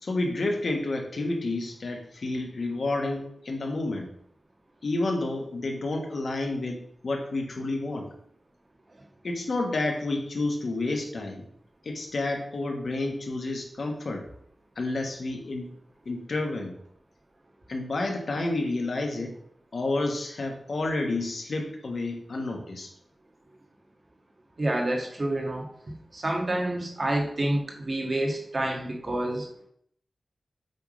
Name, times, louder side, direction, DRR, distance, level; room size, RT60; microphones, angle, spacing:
voice 1, 0.0-4.1 4.8-8.1 9.2-11.4 11.8-14.2 14.8-15.7 16.0-16.8 17.7-19.3 19.7-22.9, left 2 dB, 65° left, 2 dB, 1.4 m, -30 dB
voice 2, 24.6-25.7 26.1-29.5, right 1 dB, 40° right, 0 dB, 1.6 m, -28 dB
8.0 x 3.6 x 5.2 m, 0.67 s
wide cardioid pair, 120°, 0 cm